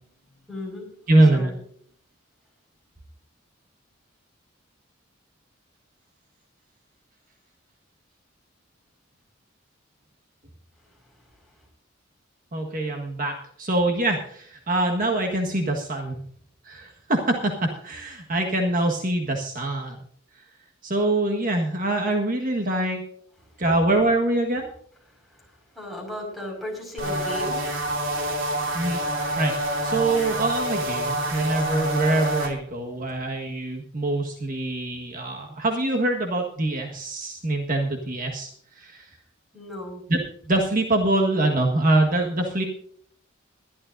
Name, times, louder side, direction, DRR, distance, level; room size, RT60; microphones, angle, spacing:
voice 1, 0.5-0.9 1.2-1.6 10.8-11.6 23.4-23.6 25.1-27.7 39.5-40.0, left 1 dB, ahead, 0 dB, 5.4 m, -37 dB
voice 2, 1.1-1.5 12.5-16.2 16.6-20.0 20.8-23.0 23.6-24.7 28.7-29.0 29.4-38.5 38.8-39.1 40.1-42.6, right 2 dB, 45° right, 1 dB, 1.6 m, -24 dB
sound 1, 27.0-32.5, right 1 dB, 70° right, 2.9 m, -27 dB
21.5 x 12.0 x 2.7 m, 0.63 s
head